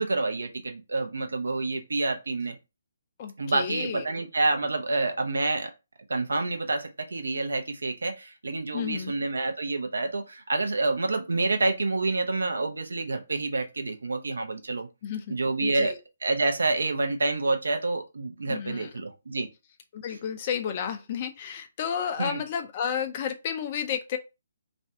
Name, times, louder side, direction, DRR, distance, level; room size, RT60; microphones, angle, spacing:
voice 1, 0.0-2.5 3.4-5.7 6.1-14.9 15.3-15.9 16.2-19.5 22.2-22.4, right 3 dB, 70° right, 0.6 m, -28 dB
voice 2, 3.2-4.0 8.7-9.1 15.0-15.3 15.6-16.0 18.5-18.9 19.9-24.2, left 8 dB, 35° left, 0.4 m, -32 dB
2.5 x 2.2 x 2.6 m
figure-of-eight pair, 140°, 0 cm